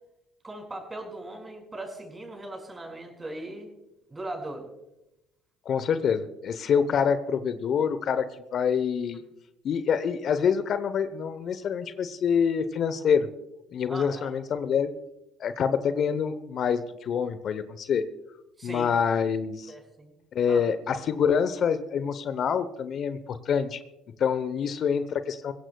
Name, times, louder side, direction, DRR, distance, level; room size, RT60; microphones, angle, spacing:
voice 1, 0.4-3.7 4.1-4.7 13.9-14.3 18.6-18.9 19.7-20.1 20.5-20.6, right 1 dB, 20° right, 3 dB, 5.3 m, -39 dB
voice 2, 5.6-8.3 8.5-9.2 9.6-13.3 13.7-14.9 15.4-18.0 18.6-19.7 20.3-23.8 24.2-25.5, left 7 dB, 55° left, 12 dB, 0.9 m, -26 dB
22.0 x 16.5 x 2.3 m, 0.90 s
hypercardioid pair, 60°, 0 cm